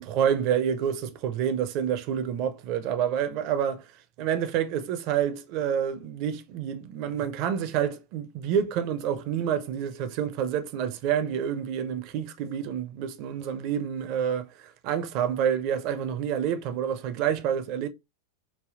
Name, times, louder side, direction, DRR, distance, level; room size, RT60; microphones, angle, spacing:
voice 1, 0.0-3.9 4.2-17.9, right 8 dB, 45° right, 0.4 m, -28 dB
3.3 x 2.3 x 2.4 m
figure-of-eight pair, 90°, 0 cm